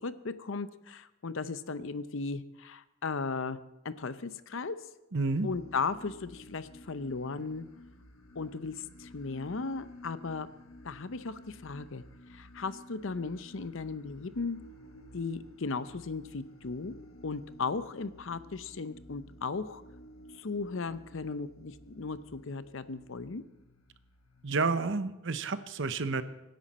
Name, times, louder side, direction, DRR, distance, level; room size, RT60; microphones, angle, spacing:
voice 1, 0.0-3.6 3.8-4.8 5.4-7.7 8.3-10.5 10.8-12.0 12.3-14.6 15.1-17.0 17.2-19.8 20.3-23.4, left 4 dB, 65° left, 14 dB, 0.7 m, -36 dB
voice 2, 5.1-5.5 24.4-26.2, right 3 dB, 65° right, 12 dB, 0.8 m, -30 dB
sound 1, 5.3-24.9, left 1 dB, 90° left, 1.5 m, -53 dB
24.5 x 10.5 x 4.3 m, 0.99 s
head